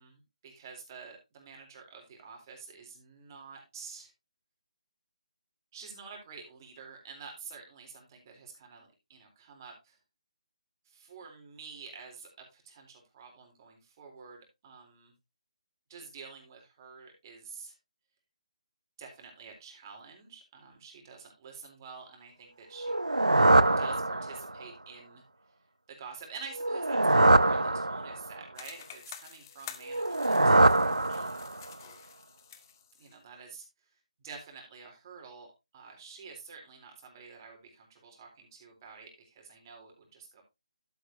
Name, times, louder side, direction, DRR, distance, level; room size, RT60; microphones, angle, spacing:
voice 1, 0.0-4.1 5.7-10.0 10.9-15.1 15.9-17.7 19.0-23.0 23.8-25.2 25.9-30.8 31.1-31.6 33.0-33.7 34.2-40.4, right 5 dB, 30° right, 2 dB, 3.9 m, -49 dB
sound 1, 22.8-24.6 26.5-28.4 29.9-31.7, right 2 dB, 90° right, 0.7 m, -24 dB
sound 2, 28.5-33.2, left 9 dB, 30° left, 1.0 m, -49 dB
12.0 x 8.3 x 2.9 m, 0.23 s
figure-of-eight pair, 150°, 4 cm